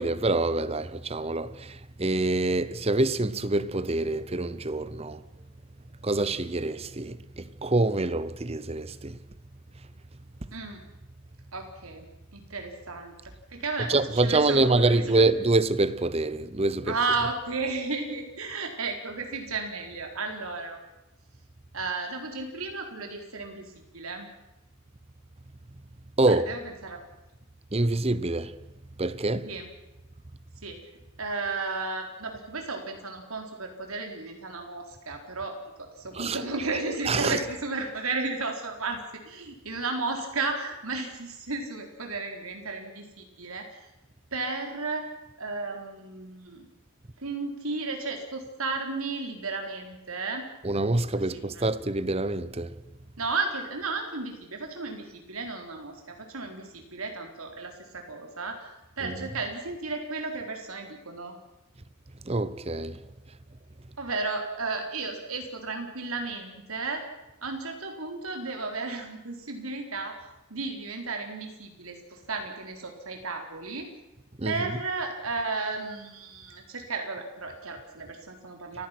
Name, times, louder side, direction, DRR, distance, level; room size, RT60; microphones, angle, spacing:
voice 1, 0.0-5.2 6.0-9.2 13.9-17.0 26.2-26.5 27.7-28.5 29.0-29.5 36.1-36.4 37.1-37.4 50.6-52.7 59.0-59.3 62.3-63.0 74.4-74.7, right 2 dB, 30° right, 0.9 m, -26 dB
voice 2, 10.5-10.9 11.5-13.2 13.5-15.2 16.9-20.8 21.7-24.3 26.3-27.0 29.4-29.7 30.6-30.8 31.2-35.6 36.0-43.8 44.3-45.1 45.4-46.7 47.2-50.5 51.1-51.6 53.2-58.7 59.0-61.4 64.0-67.0 67.4-70.2 70.5-73.9 74.4-78.9, right 3 dB, 85° right, 4.3 m, -33 dB
30.0 x 16.0 x 6.1 m
head